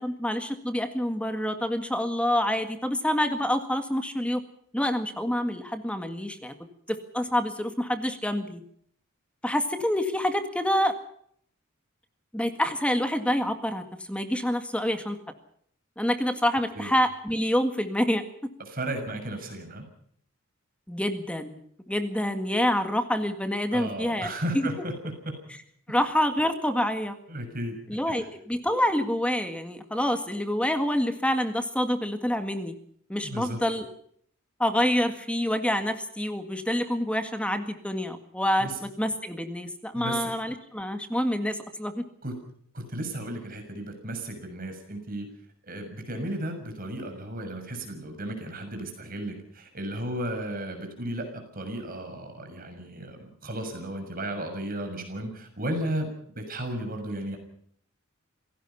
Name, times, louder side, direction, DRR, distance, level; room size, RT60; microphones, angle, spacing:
voice 1, 0.0-4.4 4.7-6.5 6.9-8.6 9.4-10.9 12.3-15.2 16.0-18.3 20.9-21.6 21.9-24.3 24.5-24.6 25.9-27.2 27.9-32.8 33.1-33.9 34.6-42.0, left 1 dB, 5° left, 8 dB, 1.9 m, -27 dB
voice 2, 18.7-19.8 23.7-25.3 27.3-27.8 28.1-28.2 33.2-33.6 38.6-38.8 39.9-40.3 42.2-42.3 42.7-45.3 45.6-57.4, right 1 dB, 45° right, 5 dB, 6.6 m, -34 dB
27.5 x 17.5 x 5.8 m, 0.65 s
head